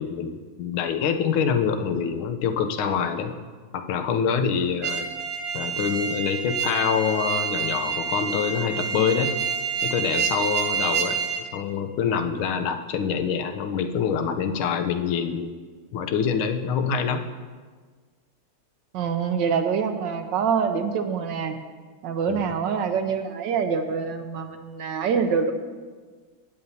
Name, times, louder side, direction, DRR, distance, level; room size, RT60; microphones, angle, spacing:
voice 1, 0.0-3.3 3.7-5.1 5.5-9.3 9.8-11.2 11.5-15.5 15.9-17.2 22.3-22.5, left 7 dB, 85° left, 7 dB, 1.6 m, -25 dB
sound 1, 4.8-11.4, right 6 dB, 45° right, 1.4 m, -28 dB
voice 2, 18.9-21.6 22.0-25.5, right 6 dB, 70° right, 7 dB, 1.2 m, -25 dB
16.0 x 8.8 x 2.7 m, 1.5 s
omnidirectional pair, 2.2 m